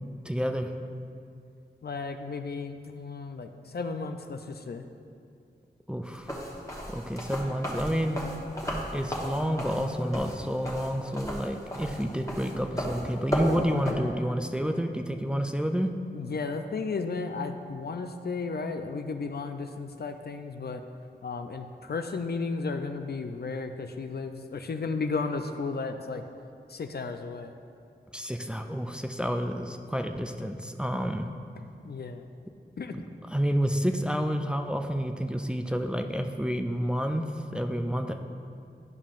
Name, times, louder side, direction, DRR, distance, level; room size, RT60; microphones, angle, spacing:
voice 1, 0.2-0.7 5.9-6.3 6.9-8.2 8.9-15.9 28.1-31.3 32.9-33.0 33.3-38.1, equal, 5° right, 5 dB, 0.4 m, -29 dB
voice 2, 1.8-4.8 16.1-20.8 21.2-26.2 26.7-27.5 31.6-32.2 32.8-33.0, left 4 dB, 60° left, 7 dB, 0.4 m, -34 dB
sound 1, 6.1-13.9, equal, 15° left, 1.2 m, -34 dB
10.5 x 5.4 x 2.5 m, 2.4 s
cardioid pair, 45°, 19 cm